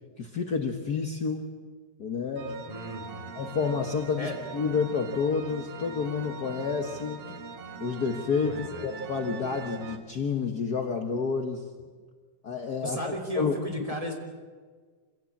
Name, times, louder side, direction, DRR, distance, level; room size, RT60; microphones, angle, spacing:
voice 1, 0.2-1.4 2.0-2.5 3.3-7.2 7.8-11.7 12.4-13.0 13.3-13.5 13.9-14.0, left 5 dB, 75° left, 5 dB, 0.8 m, -29 dB
sound 1, 2.4-10.0, right 5 dB, 55° right, 2.0 m, -42 dB
voice 2, 2.7-3.3 4.2-4.4 8.4-8.9 12.8-14.1, equal, 10° right, 2 dB, 2.9 m, -35 dB
26.0 x 16.5 x 8.5 m, 1.5 s
omnidirectional pair, 3.7 m